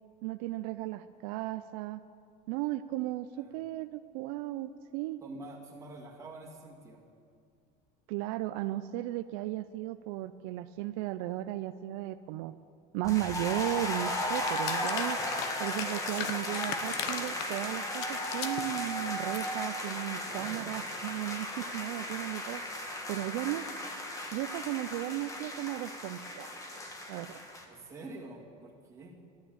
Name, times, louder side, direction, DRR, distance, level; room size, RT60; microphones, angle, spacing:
voice 1, 0.2-2.0 2.5-5.2 8.1-12.5 12.9-15.2 15.6-22.8 23.1-23.6 24.3-26.5 27.1-27.4, right 16 dB, 75° right, 11 dB, 0.5 m, -35 dB
voice 2, 5.2-7.0 20.3-20.8 27.6-29.2, right 2 dB, 15° right, -2 dB, 1.9 m, -46 dB
sound 1, 13.0-27.6, left 1 dB, 15° left, 1.3 m, -36 dB
sound 2, 14.1-18.7 19.1-19.5, left 9 dB, 80° left, 1.0 m, -39 dB
12.0 x 9.5 x 8.9 m, 2.3 s
cardioid pair, 165°, 19 cm